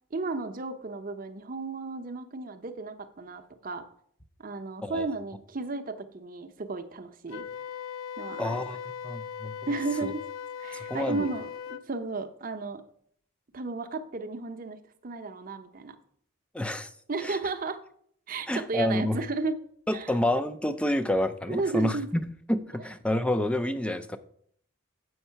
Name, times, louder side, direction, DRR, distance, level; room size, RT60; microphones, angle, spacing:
voice 1, 0.1-3.9 4.4-7.5 8.2-8.6 9.7-10.2 10.6-12.8 13.5-14.8 15.0-16.0 17.1-17.8 18.3-19.6 19.9-20.2 21.5-22.1, right 3 dB, 40° right, 8 dB, 0.6 m, -33 dB
Wind instrument woodwind instrument, 7.3-11.8, left 8 dB, 80° left, 0.4 m, -39 dB
voice 2, 8.4-8.8 9.0-9.5 10.0-10.1 10.9-11.3 16.5-16.9 17.2-17.4 18.5-19.2 19.9-24.2, left 1 dB, 5° left, 10 dB, 0.3 m, -28 dB
7.9 x 5.4 x 5.6 m, 0.64 s
head